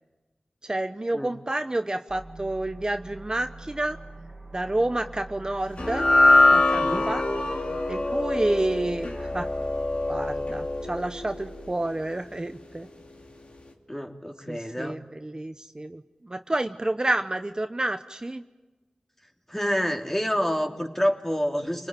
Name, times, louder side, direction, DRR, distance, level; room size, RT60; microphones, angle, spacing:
voice 1, 0.6-4.0 4.5-6.1 6.5-7.2 7.9-9.5 10.1-12.9 14.5-18.4, right 1 dB, 35° right, 8 dB, 0.9 m, -29 dB
sound 1, 2.1-11.7, right 2 dB, 10° right, 3.4 m, -44 dB
sound 2, 5.8-12.2, left 2 dB, 60° left, 2.9 m, -23 dB
voice 2, 6.8-7.1 13.9-15.0 19.5-21.9, equal, 15° left, 3 dB, 2.9 m, -28 dB
29.5 x 19.5 x 9.0 m, 1.2 s
wide cardioid pair, 45°, 2 cm